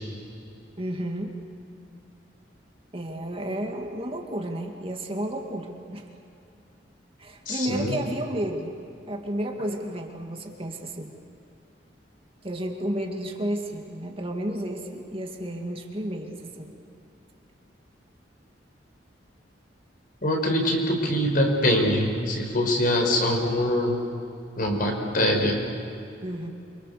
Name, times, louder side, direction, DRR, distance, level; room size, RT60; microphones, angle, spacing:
voice 1, 0.8-1.3 2.9-6.1 7.2-8.7 9.1-11.1 12.4-16.7 26.2-26.5, right 1 dB, 30° right, 2 dB, 2.3 m, -32 dB
voice 2, 7.5-7.9 20.2-24.0 24.6-25.6, left 1 dB, 50° left, 2 dB, 5.1 m, -23 dB
28.5 x 25.5 x 6.9 m, 2.6 s
head